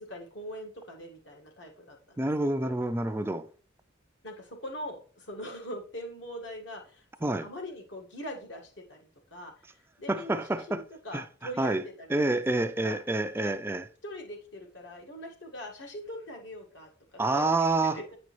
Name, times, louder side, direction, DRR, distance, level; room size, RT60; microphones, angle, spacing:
voice 1, 0.0-2.3 2.6-2.8 4.2-9.0 9.3-12.1 12.8-13.0 13.4-13.5 14.0-17.7 17.9-18.2, equal, 65° left, 1.7 m, -42 dB
voice 2, 2.2-3.5 7.2-7.5 10.1-10.8 11.1-11.2 11.6-11.8 12.1-13.8 17.2-18.0, right 2 dB, 10° right, 0.4 m, -28 dB
8.4 x 5.2 x 3.1 m
head